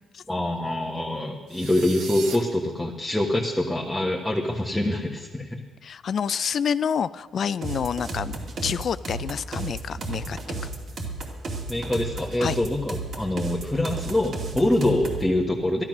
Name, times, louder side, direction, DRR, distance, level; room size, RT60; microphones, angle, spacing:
voice 1, 0.3-5.6 11.7-15.8, left 1 dB, 10° left, -2 dB, 1.4 m, -25 dB
sound 1, 1.5-2.4, right 6 dB, 80° right, 1.5 m, -37 dB
voice 2, 5.8-8.4 8.6-10.4 12.4-12.6, left 7 dB, 55° left, 17 dB, 0.3 m, -28 dB
sound 2, 7.6-15.3, right 3 dB, 55° right, 2.5 m, -33 dB
12.5 x 12.0 x 6.1 m, 1.3 s
cardioid pair, 90°, 0 cm